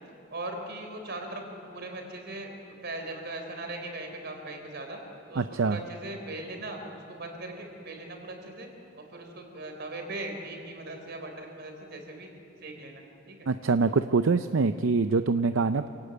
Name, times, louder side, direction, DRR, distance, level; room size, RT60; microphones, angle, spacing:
voice 1, 0.3-5.0 5.3-8.7 9.1-12.3 12.6-13.5, right 2 dB, 60° right, 4 dB, 3.9 m, -39 dB
voice 2, 5.4-5.8 13.5-15.9, right 4 dB, 80° right, 10 dB, 0.6 m, -24 dB
27.0 x 18.0 x 8.1 m, 2.8 s
head